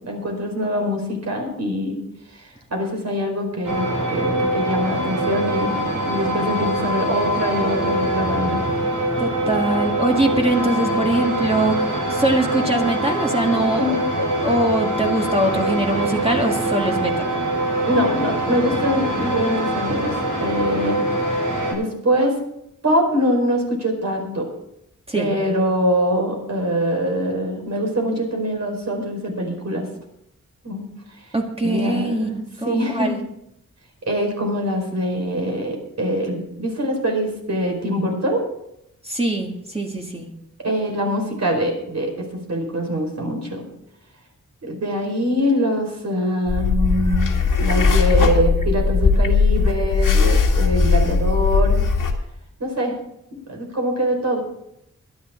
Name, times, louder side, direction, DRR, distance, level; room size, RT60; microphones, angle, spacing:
voice 1, 0.0-2.0 2.3-5.8 6.0-8.6 13.8-14.0 17.6-20.1 20.4-21.4 21.7-22.4 22.8-24.5 25.1-29.8 30.6-30.9 31.6-33.2 34.1-38.4 40.6-42.1 42.5-43.6 44.6-51.8 52.6-53.0 53.3-54.4, equal, 60° right, 1 dB, 4.9 m, -23 dB
sound 1, 3.6-21.7, right 1 dB, 85° right, 6.4 m, -23 dB
voice 2, 9.2-17.2 25.1-25.3 31.3-33.2 39.0-40.3, right 2 dB, 20° right, 1 dB, 1.9 m, -22 dB
sound 2, 46.5-52.1, left 4 dB, 85° left, 2.1 m, -18 dB
22.0 x 10.5 x 3.7 m, 0.79 s
wide cardioid pair, 100°, 31 cm